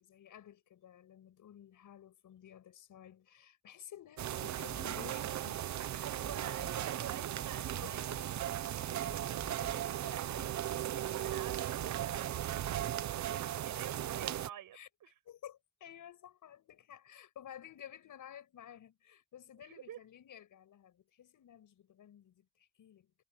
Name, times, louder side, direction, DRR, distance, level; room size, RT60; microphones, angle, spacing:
voice 1, 0.0-6.1 7.3-8.0 10.9-11.1 14.7-14.9 15.3-23.1, left 10 dB, 65° left, 6.9 m, -54 dB
sound 1, 4.2-14.5, right 12 dB, 55° right, 0.8 m, -37 dB
sound 2, 4.7-4.9 5.5-5.6 6.1-7.0 7.6-8.7 9.0-10.0 10.3-10.6, left 3 dB, 20° left, 3.9 m, -52 dB
voice 2, 6.0-12.6 13.0-15.1 19.6-20.0, right 10 dB, 75° right, 6.5 m, -49 dB
wide cardioid pair, 180°, 33 cm